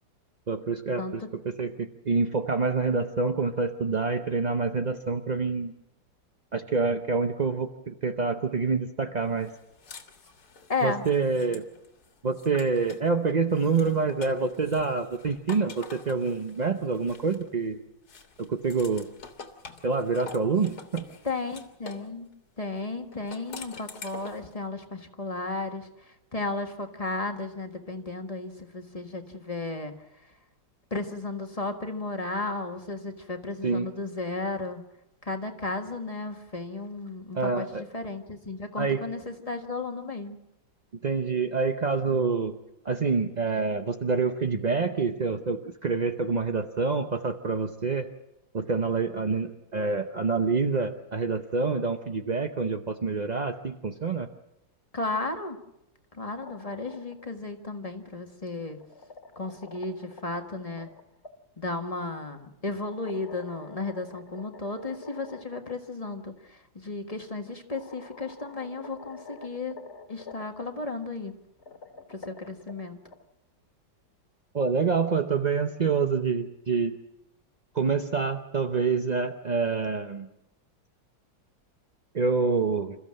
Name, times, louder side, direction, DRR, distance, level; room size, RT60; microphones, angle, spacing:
voice 1, 0.5-5.7 6.5-9.5 10.8-11.6 12.2-17.8 18.4-19.1 19.8-21.0 33.6-33.9 37.3-37.8 38.8-39.0 41.0-42.5 42.8-48.1 48.5-54.3 74.5-77.0 77.7-80.3 82.1-83.0, right 4 dB, 55° right, 7 dB, 0.4 m, -27 dB
voice 2, 1.0-1.3 10.7-11.0 21.2-22.3 22.6-29.9 30.9-34.8 35.2-40.4 54.9-55.6 56.1-58.8 59.3-60.9 61.6-69.7 70.1-71.3 72.1-73.0, left 3 dB, 20° left, 5 dB, 1.5 m, -34 dB
sound 1, 9.4-13.1 13.5-17.7 18.1-22.1 23.1-24.5, left 4 dB, 55° left, 2.1 m, -46 dB
sound 2, 56.2-57.3 58.5-61.3 62.9-65.7 66.0-66.1 67.2-67.3 67.7-70.6 71.5-73.2, left 4 dB, 35° left, 2.4 m, -47 dB
27.5 x 14.5 x 7.6 m, 0.87 s
omnidirectional pair, 2.1 m